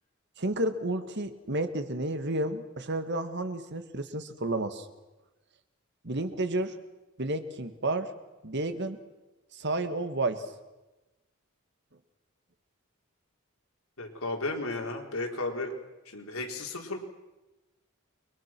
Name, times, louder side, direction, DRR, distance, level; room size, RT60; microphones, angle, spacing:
voice 1, 0.4-4.9 6.0-6.7 7.2-8.1 8.4-9.0 9.5-10.4, right 2 dB, 55° right, 9 dB, 1.9 m, -31 dB
voice 2, 14.0-15.7 16.1-17.0, left 2 dB, 85° left, 1 dB, 4.6 m, -34 dB
29.5 x 24.0 x 6.2 m, 1.1 s
head